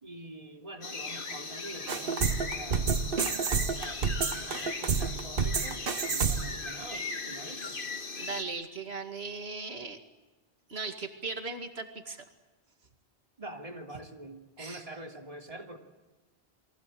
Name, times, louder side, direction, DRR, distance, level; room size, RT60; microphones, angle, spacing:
voice 1, 0.0-4.1 4.4-7.8 13.4-15.8, right 1 dB, 35° right, 2 dB, 3.0 m, -45 dB
sound 1, 0.8-8.4, left 3 dB, 60° left, 2.0 m, -38 dB
sound 2, 1.9-6.6, right 5 dB, 65° right, 1.2 m, -29 dB
voice 2, 8.2-10.0 10.7-12.2 14.6-14.8, right 4 dB, 85° right, 5 dB, 2.4 m, -38 dB
30.0 x 23.0 x 7.7 m, 1.2 s
omnidirectional pair, 1.0 m